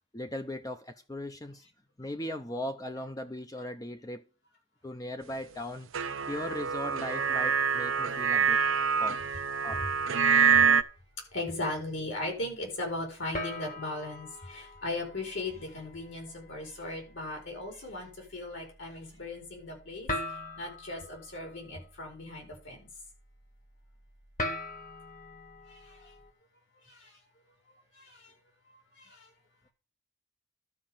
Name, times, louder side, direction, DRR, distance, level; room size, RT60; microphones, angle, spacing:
voice 1, 0.1-1.7 2.0-4.3 4.8-5.9 6.3-8.6 9.0-9.3 9.6-9.9, left 1 dB, 20° left, 0.6 m, -38 dB
sound 1, 5.9-10.8, right 6 dB, 85° right, 0.7 m, -26 dB
sound 2, 8.1-9.6 10.0-10.4 10.9-11.0 13.3-26.3, left 1 dB, 45° left, 2.0 m, -43 dB
voice 2, 10.3-10.7 11.3-20.1 20.6-22.9 25.7-26.1 26.8-27.2 27.9-28.3 29.0-29.3, left 2 dB, 65° left, 5.2 m, -38 dB
12.0 x 5.1 x 7.3 m
head